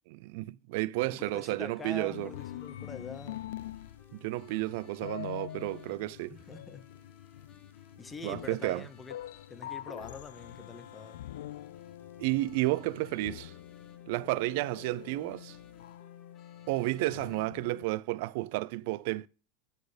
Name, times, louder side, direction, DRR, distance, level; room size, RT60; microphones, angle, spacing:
voice 1, 0.1-2.3 4.1-6.4 8.2-8.8 12.2-13.5 14.1-15.6 16.7-19.3, right 19 dB, 65° right, 0.4 m, -32 dB
voice 2, 1.1-3.4 6.3-6.9 8.0-9.2 9.5-11.2, left 3 dB, 15° left, 0.8 m, -44 dB
sound 1, 1.4-17.4, left 7 dB, 35° left, 1.7 m, -61 dB
sound 2, 2.1-17.8, left 12 dB, 85° left, 0.4 m, -45 dB
13.0 x 4.3 x 5.0 m
supercardioid pair, 135°, 0 cm